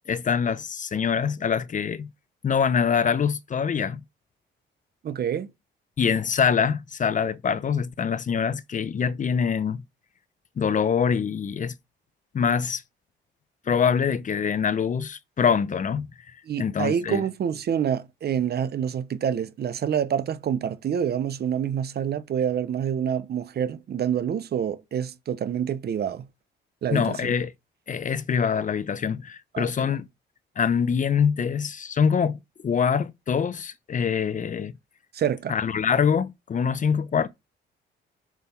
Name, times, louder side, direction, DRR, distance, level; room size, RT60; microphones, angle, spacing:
voice 1, 0.0-2.1 2.4-4.0 6.0-9.8 10.6-11.7 12.3-12.8 13.7-16.1 16.6-17.2 26.9-27.5 27.9-30.1 30.6-34.7 35.5-37.3, left 7 dB, 40° left, 0.7 m, -24 dB
voice 2, 5.0-5.5 16.5-26.3 26.8-27.2 29.5-29.7 35.1-35.5, right 8 dB, 55° right, 0.9 m, -27 dB
6.9 x 6.2 x 4.4 m
cardioid pair, 90°, 20 cm